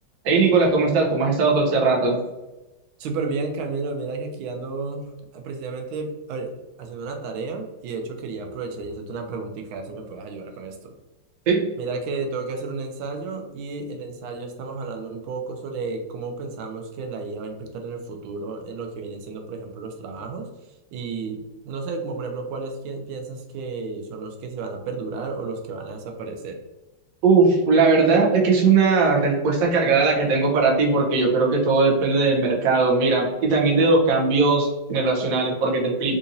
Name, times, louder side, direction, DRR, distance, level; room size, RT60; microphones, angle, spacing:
voice 1, 0.2-2.2 11.5-11.6 27.2-36.2, right 4 dB, 55° right, -1 dB, 1.0 m, -19 dB
voice 2, 3.0-10.9 11.8-20.5 20.9-26.6, right 4 dB, 90° right, 4 dB, 1.4 m, -32 dB
3.8 x 2.9 x 2.6 m, 1.0 s
omnidirectional pair, 2.2 m